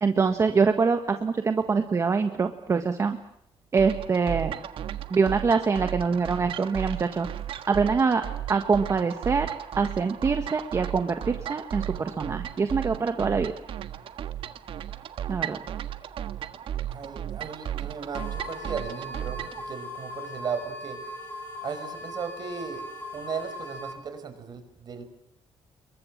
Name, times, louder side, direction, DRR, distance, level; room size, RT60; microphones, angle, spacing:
voice 1, 0.0-3.2 3.7-4.5 5.1-7.3 7.7-8.2 8.5-9.5 9.8-13.5 15.3-15.6, right 5 dB, 30° right, 7 dB, 1.5 m, -24 dB
sound 1, 3.8-19.6, right 11 dB, 70° right, 1.5 m, -35 dB
voice 2, 16.9-21.0 21.6-22.8 23.1-25.0, right 6 dB, 45° right, 9 dB, 4.9 m, -36 dB
sound 2, 18.1-23.9, left 1 dB, 25° left, 6.6 m, -39 dB
28.5 x 23.0 x 7.4 m, 0.74 s
cardioid pair, 155°, 10 cm